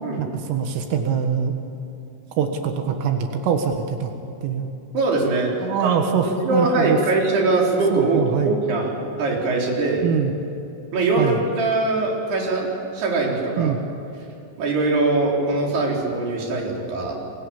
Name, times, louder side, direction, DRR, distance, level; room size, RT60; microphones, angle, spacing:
voice 1, 0.2-1.5 2.4-4.1 4.4-4.7 5.6-7.0 7.9-8.5 10.0-10.3 11.2-11.4 13.6-13.8, right 7 dB, 80° right, 5 dB, 4.1 m, -23 dB
voice 2, 4.9-5.5 5.8-5.9 6.4-8.9 9.2-10.1 10.9-13.8 14.6-17.2, right 3 dB, 55° right, -1 dB, 5.9 m, -22 dB
29.0 x 23.0 x 7.3 m, 2.8 s
omnidirectional pair, 5.7 m